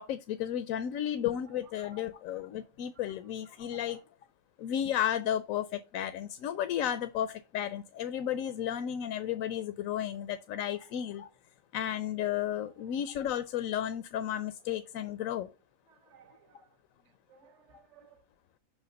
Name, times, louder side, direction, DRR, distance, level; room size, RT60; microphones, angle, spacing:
voice 1, 0.0-4.0 4.6-11.3 11.7-15.5, left 10 dB, 80° left, 1.0 m, -33 dB
voice 2, 1.5-2.0 2.5-2.7 2.9-3.2 3.5-4.0 10.7-10.9 15.9-16.8 17.0-18.2, right 8 dB, 60° right, 1.3 m, -60 dB
5.8 x 4.9 x 6.3 m
omnidirectional pair, 1.4 m